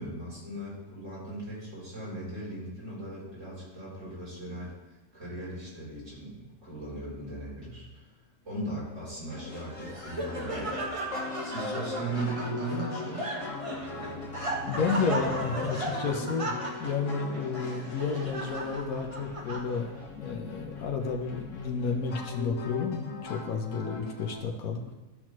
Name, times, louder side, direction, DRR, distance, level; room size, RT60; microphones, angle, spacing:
voice 1, 0.0-4.7 5.1-8.1 8.4-10.7 11.4-13.3, right 2 dB, 60° right, -8 dB, 3.8 m, -38 dB
sound 1, 9.3-24.4, left 4 dB, 65° left, 1.4 m, -40 dB
Laughter, 9.5-20.0, right 1 dB, 25° right, 1.1 m, -36 dB
sound 2, 12.3-17.1, left 2 dB, 5° left, 1.1 m, -47 dB
voice 2, 14.7-16.5 16.8-19.9 20.2-24.9, left 5 dB, 85° left, 3 dB, 1.3 m, -31 dB
13.0 x 5.9 x 3.1 m, 1.0 s
omnidirectional pair, 1.5 m